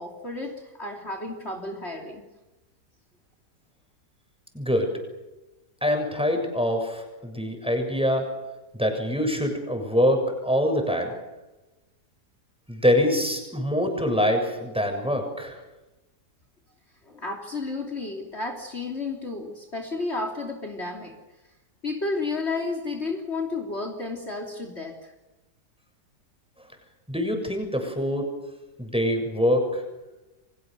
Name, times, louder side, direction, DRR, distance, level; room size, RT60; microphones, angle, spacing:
voice 1, 0.0-2.2 17.0-21.2 21.8-25.1, left 3 dB, 40° left, 4 dB, 3.4 m, -32 dB
voice 2, 4.5-4.9 5.8-8.3 8.7-11.1 12.7-15.6 27.1-28.3 28.8-29.8, equal, 5° right, 4 dB, 6.8 m, -24 dB
30.0 x 25.0 x 6.8 m, 1.1 s
omnidirectional pair, 1.7 m